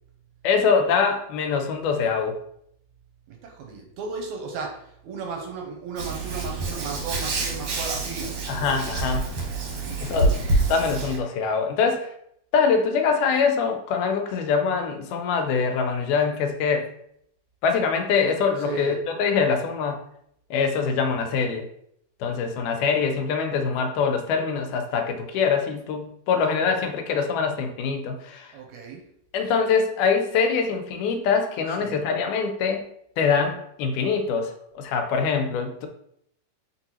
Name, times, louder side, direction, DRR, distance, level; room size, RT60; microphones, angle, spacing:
voice 1, 0.4-2.4 8.5-9.3 10.0-10.3 10.7-12.1 12.5-16.9 17.6-20.0 20.5-21.7 22.2-28.5 29.3-32.8 33.2-35.9, left 5 dB, 80° left, 5 dB, 2.1 m, -24 dB
voice 2, 3.3-8.4 9.7-10.8 18.6-19.0 28.5-29.1 31.7-32.1, right 4 dB, 80° right, 2 dB, 1.9 m, -35 dB
Hands, 6.0-11.2, right 2 dB, 65° right, 1.6 m, -27 dB
4.5 x 3.9 x 2.8 m, 0.72 s
omnidirectional pair, 3.6 m